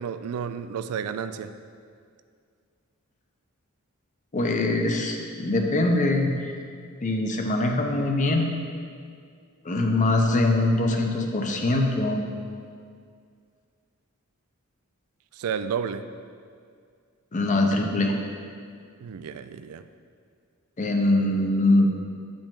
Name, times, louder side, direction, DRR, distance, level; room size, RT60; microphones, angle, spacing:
voice 1, 0.0-1.5 15.3-16.1 19.0-19.9, right 7 dB, 80° right, 12 dB, 0.3 m, -31 dB
voice 2, 4.3-6.5 7.0-8.5 9.6-12.2 17.3-18.1 20.8-21.9, left 2 dB, 35° left, 3 dB, 0.7 m, -23 dB
8.5 x 5.2 x 3.7 m, 2.2 s
head